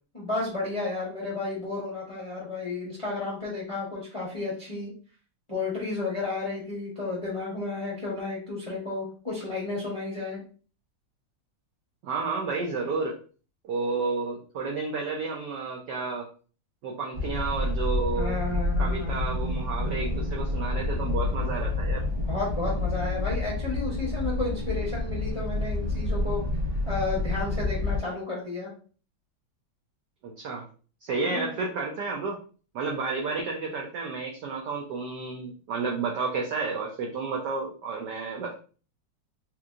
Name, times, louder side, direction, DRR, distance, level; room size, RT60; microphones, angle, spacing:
voice 1, 0.1-4.9 5.5-10.4 18.2-19.2 22.2-26.4 26.9-28.7 31.2-31.5, left 3 dB, 35° left, -6 dB, 0.5 m, -32 dB
voice 2, 12.0-13.2 13.6-16.3 16.8-18.3 18.8-22.0 30.2-30.6 31.0-32.4 32.7-38.5, right 4 dB, 80° right, 0 dB, 0.9 m, -31 dB
sound 1, 17.1-28.0, left 2 dB, 45° right, 1.3 m, -29 dB
3.4 x 2.9 x 2.4 m, 0.39 s
omnidirectional pair, 2.4 m